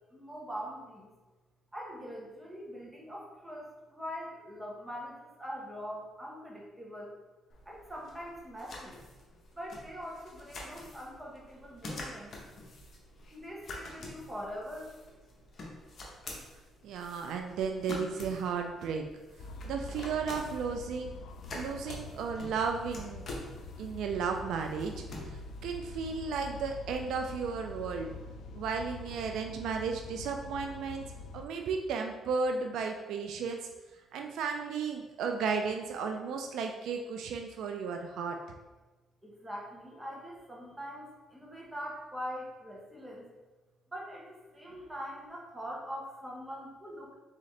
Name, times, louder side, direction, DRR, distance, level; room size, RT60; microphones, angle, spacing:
voice 1, 0.1-1.1 1.7-7.1 7.6-9.0 9.5-12.4 13.3-14.9 39.2-43.3 43.9-47.1, equal, 10° right, -3 dB, 1.2 m, -43 dB
sound 1, 7.5-27.1, left 2 dB, 50° left, 0.9 m, -47 dB
voice 2, 16.8-19.0 19.6-21.1 21.5-23.2 23.8-25.4 25.6-28.1 28.5-31.0 31.3-33.6 34.1-38.4, right 5 dB, 80° right, 4 dB, 0.4 m, -34 dB
sound 2, 19.4-31.5, left 3 dB, 75° left, 0.3 m, -45 dB
3.9 x 3.7 x 3.3 m, 1.2 s
cardioid pair, 90°, 0 cm